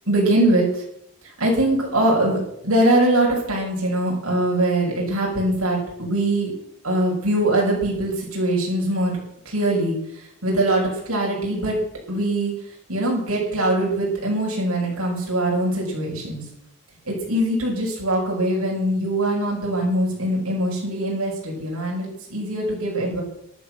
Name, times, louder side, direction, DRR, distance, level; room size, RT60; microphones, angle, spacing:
voice 1, 0.1-0.8 1.2-6.5 6.8-9.2 9.4-11.8 12.1-12.5 12.9-16.4 17.1-23.2, right 1 dB, 85° right, -3 dB, 6.8 m, -22 dB
13.0 x 12.5 x 6.5 m, 0.76 s
head